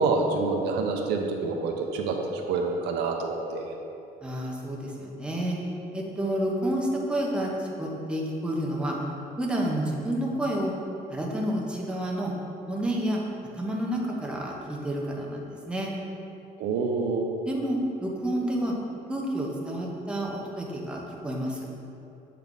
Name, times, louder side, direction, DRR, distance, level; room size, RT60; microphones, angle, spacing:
voice 1, 0.0-2.2 2.5-3.7 16.6-17.3, right 4 dB, 85° right, 2 dB, 0.6 m, -27 dB
voice 2, 4.2-5.6 5.9-9.0 9.4-10.7 11.1-12.3 12.7-13.2 13.5-15.9 17.4-18.8 19.1-21.6, right 1 dB, 5° right, -2 dB, 0.8 m, -29 dB
7.4 x 3.4 x 3.8 m, 2.8 s
cardioid pair, 110°, 17 cm